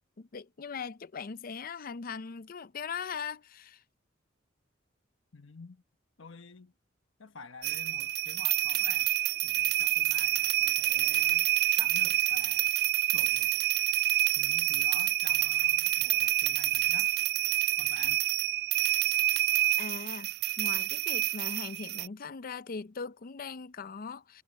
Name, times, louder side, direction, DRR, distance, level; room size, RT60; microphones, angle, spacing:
voice 1, 0.2-3.8 19.8-20.3 20.6-24.4, left 5 dB, 45° left, 0.5 m, -40 dB
voice 2, 5.3-5.8 6.2-6.7 7.2-9.1 9.4-12.8 13.1-13.6 14.4-17.1 17.8-18.3, left 4 dB, 80° left, 1.2 m, -49 dB
sound 1, 7.6-22.1, right 15 dB, 55° right, 0.3 m, -27 dB
head